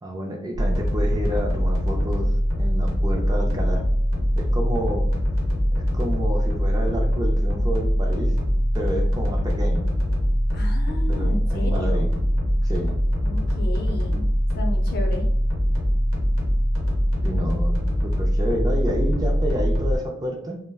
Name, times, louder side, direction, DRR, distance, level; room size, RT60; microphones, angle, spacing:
voice 1, 0.0-2.3 2.6-3.9 4.4-5.1 5.7-8.4 8.7-9.9 11.1-12.1 12.6-13.0 17.2-17.7 18.0-20.6, equal, 20° right, 1 dB, 0.4 m, -29 dB
sound 1, 0.5-20.0, equal, 85° right, 0.8 m, -22 dB
voice 2, 10.5-12.1 13.2-14.3 14.6-15.3, left 1 dB, 50° left, 3 dB, 0.5 m, -34 dB
2.3 x 2.1 x 3.4 m, 0.68 s
head